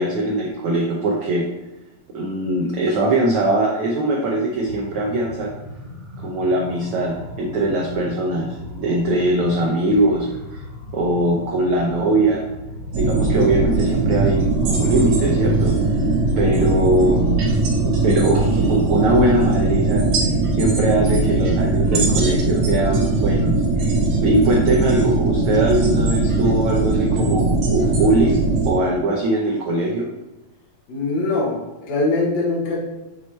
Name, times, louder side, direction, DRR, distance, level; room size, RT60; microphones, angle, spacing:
voice 1, 0.0-1.5 2.1-5.5 6.2-10.6 10.9-12.4 13.0-15.8 16.4-17.4 17.7-20.0 20.5-24.0 24.2-28.4 28.7-30.1, right 1 dB, 90° right, -2 dB, 1.2 m, -21 dB
sound 1, 4.5-19.5, left 1 dB, 35° left, 1.7 m, -37 dB
sound 2, 12.9-28.7, right 2 dB, 60° right, 2.0 m, -20 dB
voice 2, 30.9-32.8, left 2 dB, 65° left, -4 dB, 2.6 m, -22 dB
7.8 x 3.2 x 4.2 m, 1.0 s
omnidirectional pair, 3.5 m